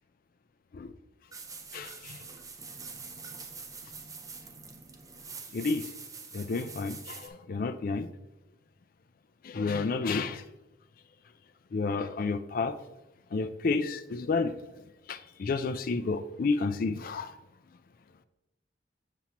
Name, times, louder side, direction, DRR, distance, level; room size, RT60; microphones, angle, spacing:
sound 1, 1.3-7.3, right 4 dB, 20° right, 0.6 m, -45 dB
voice 1, 1.7-2.2 5.5-5.8 6.3-8.1 9.4-10.4 11.7-12.7 13.3-14.5 15.1-17.3, left 4 dB, 55° left, 11 dB, 0.4 m, -30 dB
7.3 x 6.9 x 2.9 m, 0.95 s
head